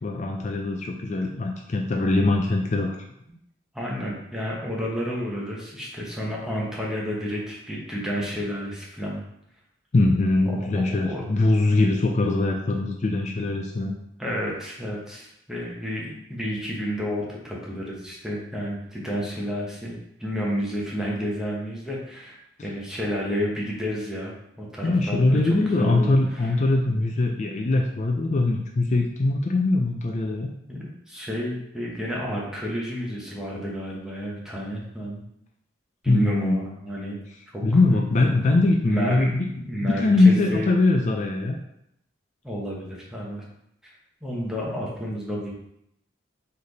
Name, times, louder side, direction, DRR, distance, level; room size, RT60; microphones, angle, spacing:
voice 1, 0.0-3.0 9.9-13.9 24.8-30.5 36.1-36.6 37.6-39.5 39.8-41.6, left 2 dB, 40° left, 2 dB, 0.4 m, -22 dB
voice 2, 3.7-9.2 10.4-10.7 11.0-11.2 14.2-26.5 30.7-35.2 36.0-37.2 37.5-37.6 38.9-40.7 42.4-43.4 43.8-43.9 44.2-45.5, equal, 5° right, -4 dB, 1.0 m, -31 dB
4.1 x 3.3 x 4.0 m, 0.77 s
head